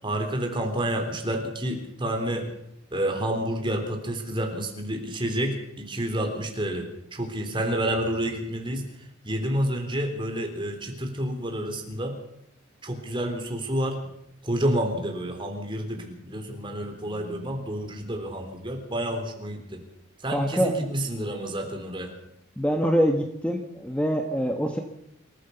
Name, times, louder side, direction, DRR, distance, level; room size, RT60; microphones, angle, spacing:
voice 1, 0.0-2.5 2.9-8.8 9.2-12.1 12.8-14.0 14.4-19.8 20.2-22.1, right 1 dB, 25° right, 4 dB, 3.6 m, -29 dB
voice 2, 20.3-20.7 22.6-24.8, equal, 5° left, 4 dB, 1.3 m, -24 dB
27.0 x 14.0 x 7.0 m, 0.79 s
head